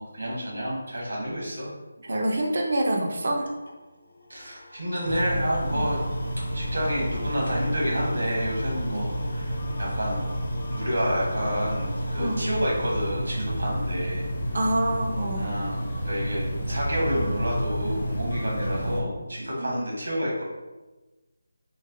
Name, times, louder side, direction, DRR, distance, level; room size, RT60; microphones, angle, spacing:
voice 1, 0.0-1.7 4.3-6.0 6.5-10.2 10.7-14.2 14.5-14.7 15.3-20.4, equal, 80° right, -4 dB, 1.1 m, -29 dB
voice 2, 2.0-3.5 5.7-5.9 8.9-9.0 12.2-12.4 14.5-15.5 19.6-19.7, right 1 dB, 55° right, 2 dB, 0.5 m, -26 dB
sound 1, 3.4-13.1, left 1 dB, 80° left, 0.5 m, -43 dB
sound 2, 5.0-19.0, equal, 35° left, 0.6 m, -30 dB
3.0 x 2.0 x 2.5 m, 1.1 s
figure-of-eight pair, 165°, 0 cm